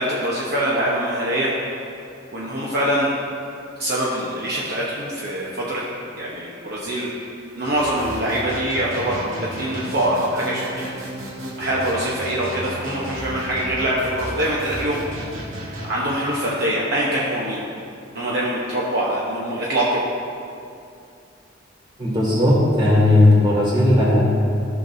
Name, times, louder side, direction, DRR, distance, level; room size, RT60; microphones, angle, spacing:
voice 1, 0.0-1.5 2.3-3.1 3.8-5.8 6.2-7.1 7.6-11.0 11.6-15.0 15.9-17.6 18.1-20.0, right 1 dB, 50° right, -6 dB, 0.9 m, -24 dB
sound 1, 7.6-15.9, right 1 dB, 85° right, 1.6 m, -33 dB
voice 2, 22.0-24.2, left 1 dB, 25° right, -6 dB, 2.1 m, -16 dB
14.0 x 6.0 x 2.6 m, 2.5 s
head